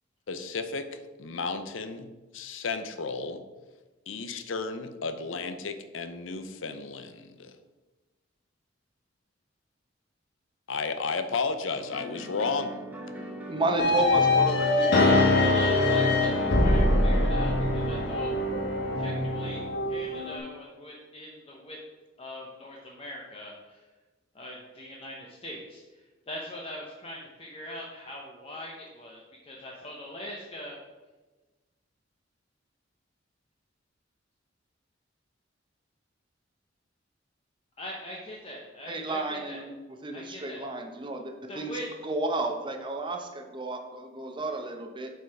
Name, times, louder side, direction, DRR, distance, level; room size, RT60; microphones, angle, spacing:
voice 1, 0.3-3.4 4.1-7.6 10.7-12.8, left 4 dB, 85° left, 10 dB, 0.6 m, -33 dB
sound 1, 11.7-19.6, right 1 dB, 10° right, 1.1 m, -41 dB
voice 2, 13.5-15.5 38.9-39.7 40.0-41.7 42.0-45.1, right 2 dB, 25° right, 4 dB, 0.8 m, -32 dB
sound 2, 13.8-20.4, left 2 dB, 60° left, 1.4 m, -23 dB
voice 3, 15.4-18.3 18.9-19.6 19.9-21.8 22.2-23.8 24.3-30.8 37.8-39.6 40.1-40.6 41.5-41.9, left 1 dB, 30° left, -2 dB, 0.9 m, -42 dB
7.9 x 4.7 x 4.8 m, 1.2 s
head